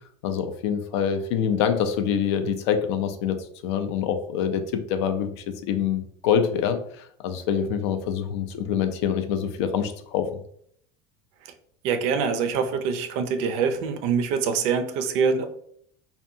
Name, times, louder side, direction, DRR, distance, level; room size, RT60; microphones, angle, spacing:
voice 1, 0.2-10.4, left 8 dB, 85° left, 9 dB, 0.4 m, -26 dB
voice 2, 11.8-15.5, right 6 dB, 55° right, 8 dB, 0.4 m, -24 dB
2.6 x 2.2 x 2.6 m, 0.67 s
cardioid pair, 150°, 14 cm